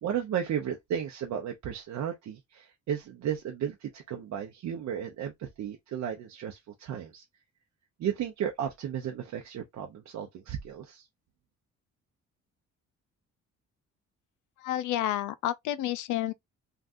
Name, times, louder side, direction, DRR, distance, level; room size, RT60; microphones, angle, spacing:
voice 1, 0.0-7.2 8.0-11.1, right 9 dB, 65° right, 0.7 m, -34 dB
voice 2, 14.6-16.3, left 13 dB, 80° left, 0.5 m, -30 dB
3.5 x 2.4 x 2.5 m
cardioid pair, 90°, 30 cm